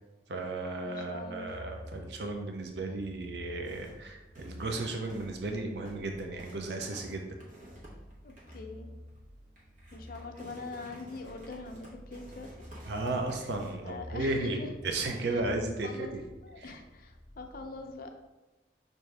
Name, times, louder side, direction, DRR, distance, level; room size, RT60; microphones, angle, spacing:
voice 1, 0.3-7.3 12.8-16.2 16.6-16.7, right 2 dB, 65° right, 3 dB, 0.5 m, -34 dB
voice 2, 0.8-1.6 8.2-8.9 9.9-12.5 13.8-14.7 15.8-16.1 16.4-18.1, left 3 dB, 50° left, 5 dB, 0.5 m, -43 dB
sound 1, 1.4-17.9, left 1 dB, 15° right, 1.1 m, -51 dB
sound 2, 3.6-4.1 4.4-5.5 5.8-6.1 6.4-8.7 9.1-9.2 9.6-13.7, equal, 45° right, 1.0 m, -52 dB
5.9 x 2.7 x 3.3 m, 1.1 s
head